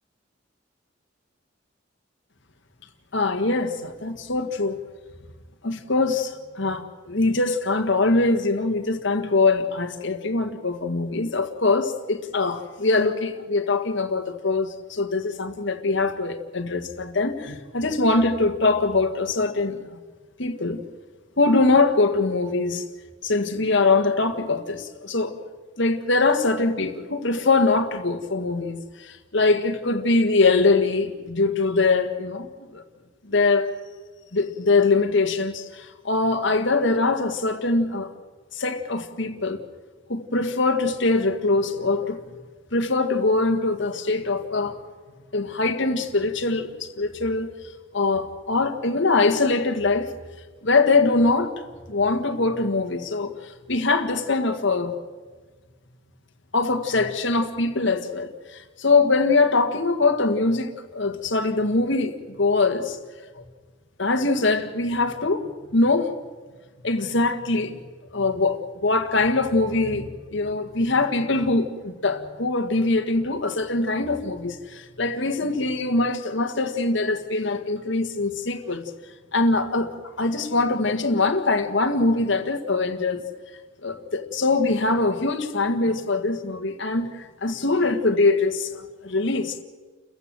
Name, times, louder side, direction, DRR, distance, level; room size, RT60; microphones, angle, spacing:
voice 1, 3.1-4.8 5.6-20.0 20.4-20.8 21.4-22.8 23.2-25.3 25.8-32.8 33.3-33.7 34.3-38.1 38.5-39.6 40.1-42.2 42.7-44.8 45.3-47.5 47.9-50.1 50.6-51.5 51.9-53.3 53.7-54.9 56.5-63.0 63.3-63.4 64.0-66.1 66.8-67.8 68.1-78.8 79.3-83.2 83.8-89.5, left 3 dB, 65° left, 1.7 m, -23 dB
30.0 x 15.0 x 7.6 m
head